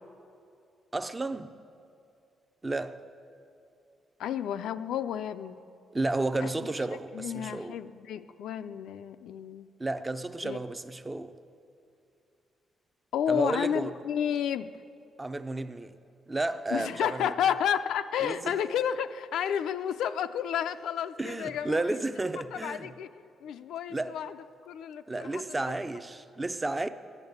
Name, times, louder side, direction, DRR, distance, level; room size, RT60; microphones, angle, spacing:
voice 1, 0.9-1.6 2.6-3.0 5.9-7.7 9.8-11.3 13.3-13.9 15.2-15.9 16.3-17.2 18.2-18.3 21.2-22.9 23.9-24.2 25.1-26.9, right 2 dB, 15° right, 0.5 m, -32 dB
voice 2, 4.2-5.6 6.4-6.5 6.9-9.7 10.4-10.6 13.1-14.7 16.7-22.0 22.4-25.7, left 9 dB, 90° left, 0.5 m, -31 dB
15.0 x 10.5 x 8.0 m
cardioid pair, 175°, 0 cm